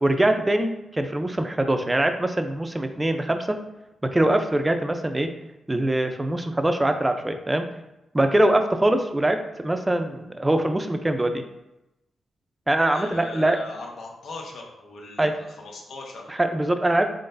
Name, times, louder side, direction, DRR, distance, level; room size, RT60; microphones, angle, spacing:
voice 1, 0.0-3.6 4.0-5.3 5.7-7.7 8.1-11.4 12.7-13.6 15.2-15.3 16.3-17.1, right 1 dB, 20° right, 7 dB, 0.6 m, -23 dB
voice 2, 12.9-16.3, left 2 dB, 70° left, -1 dB, 1.0 m, -39 dB
3.8 x 3.7 x 2.6 m, 0.92 s
supercardioid pair, 45°, 0 cm